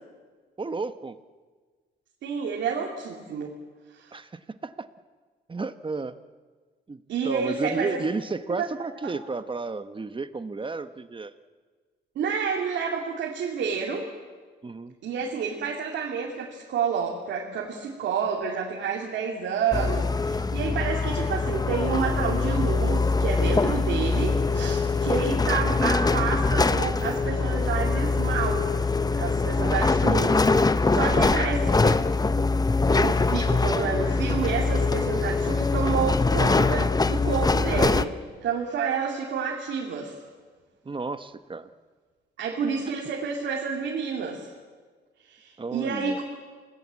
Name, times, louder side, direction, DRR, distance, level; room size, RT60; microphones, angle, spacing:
voice 1, 0.6-1.2 4.1-4.3 4.6-4.9 5.5-6.1 6.9-11.3 14.6-14.9 31.0-31.3 40.8-41.7 45.6-46.2, right 3 dB, 25° right, 11 dB, 1.2 m, -32 dB
voice 2, 2.2-3.5 3.9-4.1 7.1-8.0 8.6-8.7 9.0-9.1 12.1-14.1 15.0-28.7 29.1-32.0 32.9-40.1 42.4-44.5 45.2-46.2, right 6 dB, 90° right, -2 dB, 2.7 m, -29 dB
sound 1, 19.7-38.1, left 3 dB, 20° left, 0.8 m, -23 dB
27.5 x 19.0 x 7.6 m, 1.5 s
cardioid pair, 80°, 18 cm